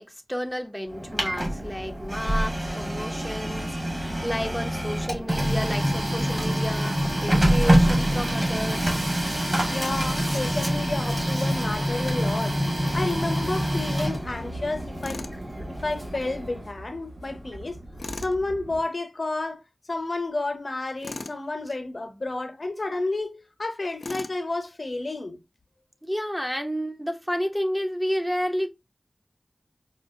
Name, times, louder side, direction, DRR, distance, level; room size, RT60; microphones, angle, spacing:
voice 1, 0.0-9.0 26.0-28.7, equal, ahead, 0.6 m, -31 dB
Printer, 0.9-16.7, equal, 45° right, 1.6 m, -26 dB
voice 2, 9.7-12.6 12.9-15.2 15.7-17.8 18.1-19.6 19.9-25.4, left 2 dB, 60° left, 0.8 m, -31 dB
sound 1, 12.7-18.8, right 1 dB, 85° right, 2.2 m, -41 dB
Tools, 15.0-15.4 18.0-18.4 21.0-21.4 24.0-24.4, left 3 dB, 80° left, 0.4 m, -37 dB
4.9 x 2.1 x 2.5 m
cardioid pair, 45°, 0 cm